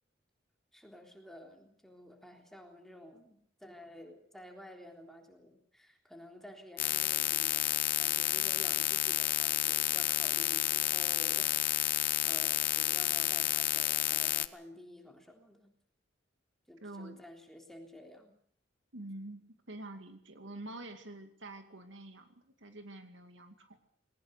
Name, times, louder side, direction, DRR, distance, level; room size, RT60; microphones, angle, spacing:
voice 1, 0.7-15.7 16.7-18.3, left 1 dB, ahead, 3 dB, 3.6 m, -52 dB
sound 1, 6.8-14.5, left 13 dB, 50° left, 0.9 m, -30 dB
voice 2, 16.8-17.2 18.9-23.8, right 2 dB, 65° right, 7 dB, 2.4 m, -47 dB
20.0 x 19.0 x 8.2 m, 0.63 s
head